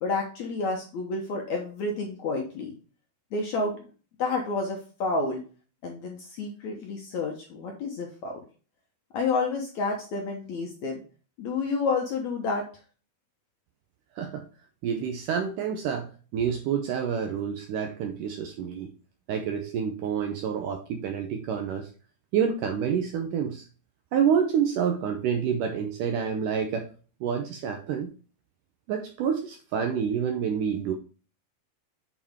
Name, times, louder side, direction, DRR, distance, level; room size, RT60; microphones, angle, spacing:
voice 1, 0.0-2.7 3.3-3.7 4.2-5.4 5.8-8.4 9.1-11.0 11.4-12.7, left 3 dB, 65° left, 1 dB, 1.9 m, -29 dB
voice 2, 14.8-18.9 19.3-21.9 22.3-23.6 24.1-26.9 27.2-28.1 28.9-30.9, right 7 dB, 75° right, 4 dB, 1.9 m, -28 dB
8.6 x 4.9 x 3.5 m, 0.37 s
omnidirectional pair, 4.5 m